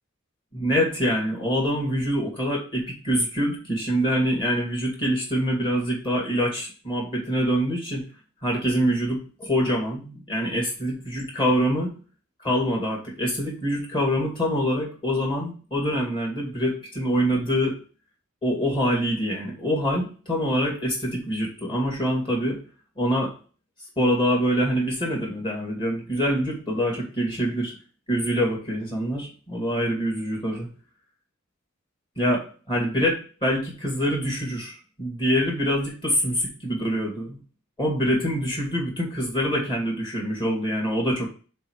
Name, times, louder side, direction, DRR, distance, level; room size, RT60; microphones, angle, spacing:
voice 1, 0.5-8.0 8.4-11.9 12.4-17.7 18.4-22.6 23.0-23.3 24.0-27.7 28.1-30.7 32.2-37.4 37.8-41.3, equal, 25° left, -2 dB, 2.5 m, -25 dB
6.9 x 3.7 x 4.9 m, 0.37 s
head